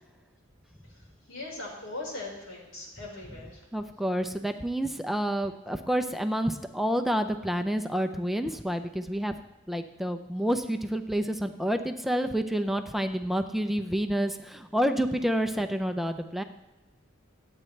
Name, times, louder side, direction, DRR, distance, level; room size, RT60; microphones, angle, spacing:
voice 1, 0.8-3.6, left 2 dB, 85° left, -2 dB, 4.8 m, -40 dB
voice 2, 3.7-9.3 9.7-16.4, equal, ahead, 7 dB, 0.5 m, -29 dB
25.5 x 8.8 x 3.3 m, 1.1 s
head